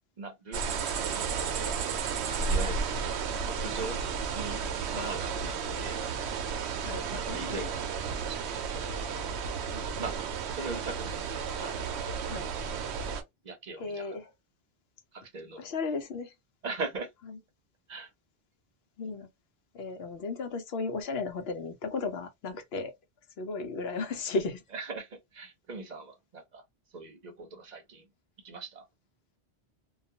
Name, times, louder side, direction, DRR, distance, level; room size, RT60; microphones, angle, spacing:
voice 1, 0.2-1.3 1.6-2.1 2.5-2.9 3.5-4.1 4.3-4.6 4.9-6.0 7.1-8.9 9.2-9.3 10.0-10.1 10.5-12.2 13.4-14.1 15.1-15.7 16.6-17.1 17.9-18.1 24.7-26.6 26.9-28.1 28.4-28.9, right 3 dB, 45° right, 0.8 m, -41 dB
sound 1, 0.5-13.2, right 5 dB, 85° right, 0.8 m, -33 dB
voice 2, 6.8-7.7 9.7-9.9 12.3-12.5 13.8-14.3 15.6-16.3 19.0-19.3 19.7-22.9 23.4-24.6, left 3 dB, 70° left, 0.9 m, -35 dB
2.3 x 2.3 x 2.7 m
omnidirectional pair, 1.1 m